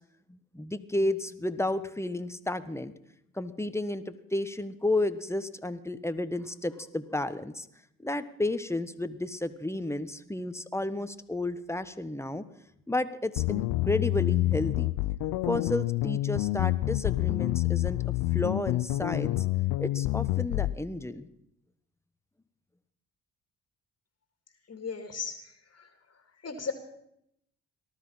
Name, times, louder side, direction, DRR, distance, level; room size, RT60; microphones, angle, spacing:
voice 1, 0.3-2.9 3.3-7.7 8.0-12.4 12.9-14.9 15.5-19.4 19.8-21.3, left 2 dB, 5° left, 12 dB, 1.3 m, -32 dB
sound 1, 13.4-20.7, left 17 dB, 80° left, 0.6 m, -28 dB
voice 2, 24.7-25.4 26.4-26.7, left 5 dB, 40° left, 6 dB, 2.4 m, -34 dB
19.0 x 13.0 x 5.7 m, 0.76 s
supercardioid pair, 55°, 36 cm